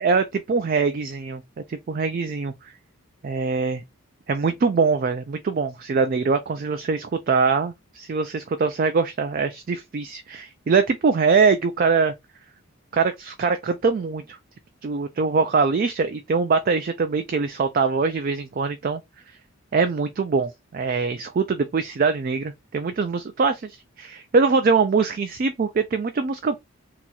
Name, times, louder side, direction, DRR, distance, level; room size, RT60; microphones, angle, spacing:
voice 1, 0.0-1.4 1.7-2.7 3.2-3.8 4.3-12.1 12.9-14.4 14.8-19.0 19.7-26.6, right 4 dB, 40° right, 0.3 m, -23 dB
2.9 x 2.3 x 3.9 m
head